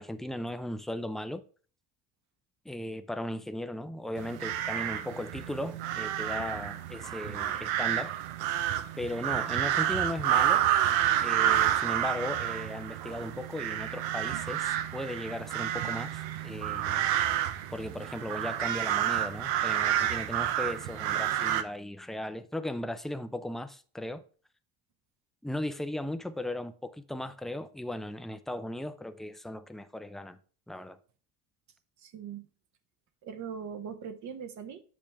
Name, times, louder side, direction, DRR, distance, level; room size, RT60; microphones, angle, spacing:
voice 1, 0.0-1.4 2.7-8.1 9.0-10.6 11.2-17.1 17.7-24.2 25.4-30.4 30.7-31.0, left 1 dB, ahead, 0.4 m, -37 dB
sound 1, 4.2-21.6, right 11 dB, 85° right, 0.7 m, -29 dB
voice 2, 32.0-32.5 33.2-34.8, right 7 dB, 50° right, 1.0 m, -40 dB
7.2 x 5.3 x 3.4 m
supercardioid pair, 105°, 36 cm